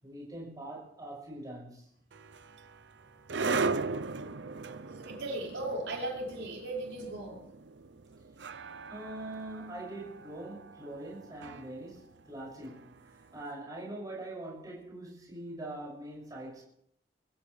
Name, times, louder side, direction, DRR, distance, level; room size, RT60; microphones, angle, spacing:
voice 1, 0.0-1.9 8.9-16.6, right 1 dB, 20° right, 6.3 m, -43 dB
sound 1, 2.1-13.2, right 4 dB, 65° right, 0.7 m, -38 dB
voice 2, 4.9-7.4, right 2 dB, 85° right, 5.4 m, -37 dB
23.0 x 16.0 x 3.3 m
head